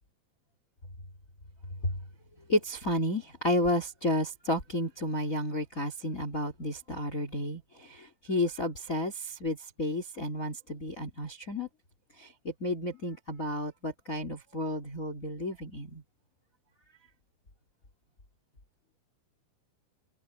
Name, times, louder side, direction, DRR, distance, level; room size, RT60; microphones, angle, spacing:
voice 1, 2.5-11.7 12.2-16.0, left 1 dB, 20° left, 2.9 m, -32 dB
omnidirectional pair, 5.1 m